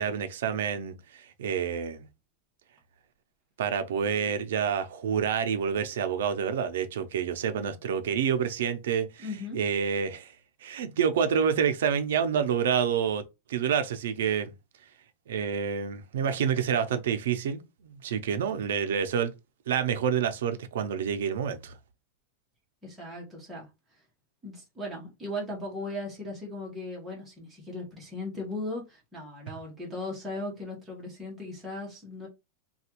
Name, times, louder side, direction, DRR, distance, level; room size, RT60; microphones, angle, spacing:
voice 1, 0.0-2.1 3.6-9.3 9.6-10.3 10.6-14.5 15.3-19.3 19.7-21.7, right 7 dB, 90° right, 0.5 m, -28 dB
voice 2, 9.2-9.6 22.8-23.7 24.4-32.3, left 1 dB, 10° right, 1.1 m, -37 dB
3.2 x 2.3 x 2.9 m
supercardioid pair, 175°, 0 cm